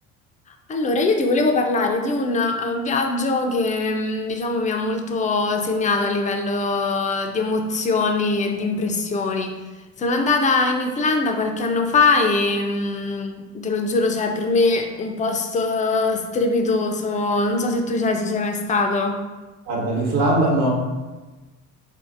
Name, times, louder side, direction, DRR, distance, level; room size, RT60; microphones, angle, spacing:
voice 1, 0.7-9.5 10.0-19.2, left 3 dB, 20° left, 4 dB, 0.4 m, -22 dB
voice 2, 19.7-20.7, right 1 dB, 65° right, -2 dB, 1.1 m, -20 dB
3.9 x 2.6 x 2.5 m, 1.2 s
hypercardioid pair, 65°, 40 cm